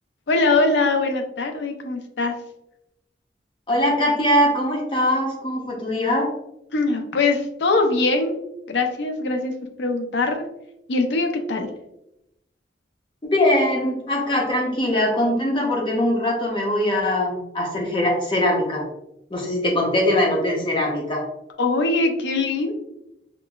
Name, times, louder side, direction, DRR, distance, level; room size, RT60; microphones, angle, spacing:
voice 1, 0.3-2.3 6.7-8.4 8.7-10.4 10.9-11.7 21.6-22.7, left 3 dB, 80° left, 5 dB, 0.5 m, -22 dB
voice 2, 3.7-6.3 13.2-18.9 19.3-21.2, left 1 dB, 30° left, -1 dB, 0.7 m, -21 dB
5.7 x 2.1 x 2.3 m, 0.85 s
head